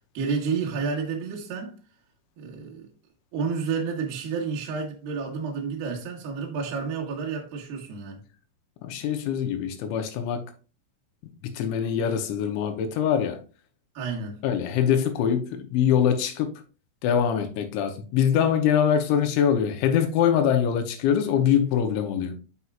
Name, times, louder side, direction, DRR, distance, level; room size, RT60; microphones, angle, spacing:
voice 1, 0.1-1.8 2.4-2.9 3.3-8.2 13.9-14.4, right 5 dB, 60° right, 2.8 m, -30 dB
voice 2, 8.8-10.4 11.4-13.4 14.4-16.5 17.0-22.4, left 8 dB, 75° left, 3.0 m, -23 dB
9.5 x 5.6 x 2.4 m
omnidirectional pair, 5.7 m